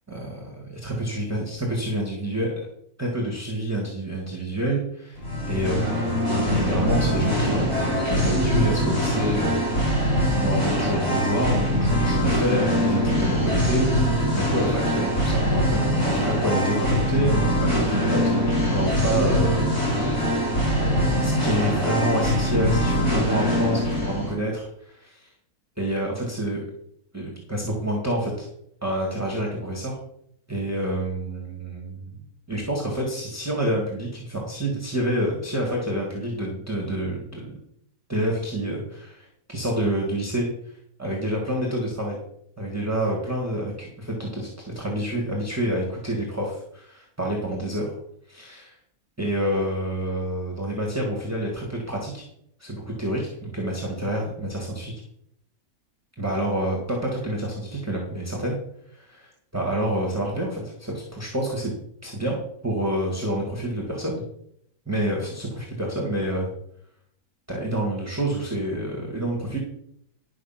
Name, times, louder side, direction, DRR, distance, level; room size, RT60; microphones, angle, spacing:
voice 1, 0.1-2.7 3.0-18.2 18.7-20.2 20.8-25.3 25.8-26.7 27.1-28.5 28.8-30.0 30.5-32.1 32.5-37.5 38.1-42.2 42.6-47.9 48.3-48.7 49.2-52.2 52.6-54.9 56.2-58.6 58.9-61.7 62.0-62.4 62.6-64.2 64.9-66.5 67.5-69.6, right 1 dB, 10° right, -1 dB, 2.0 m, -28 dB
Singing, 5.2-24.3, equal, 25° left, 4.9 m, -23 dB
11.5 x 6.2 x 5.9 m, 0.71 s
omnidirectional pair, 1.6 m